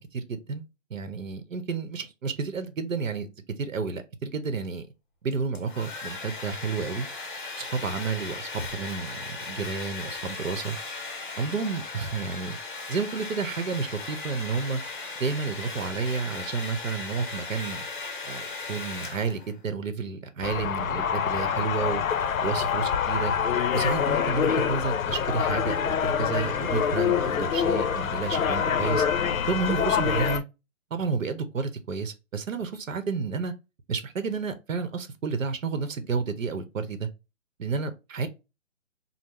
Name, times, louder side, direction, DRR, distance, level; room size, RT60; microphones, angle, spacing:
voice 1, 0.1-0.6 0.9-3.3 3.6-4.9 5.2-7.1 7.6-10.8 11.4-12.6 12.9-14.8 15.2-17.8 18.2-22.0 22.4-23.3 23.7-29.0 29.5-30.4 30.9-33.5 33.9-37.1 37.6-38.3, right 5 dB, 75° right, 0.8 m, -31 dB
Domestic sounds home sounds, 5.3-19.6, left 3 dB, 40° left, 0.6 m, -37 dB
sound 1, 20.4-30.4, left 7 dB, 85° left, 0.5 m, -26 dB
3.6 x 2.0 x 2.9 m
hypercardioid pair, 160°, 39 cm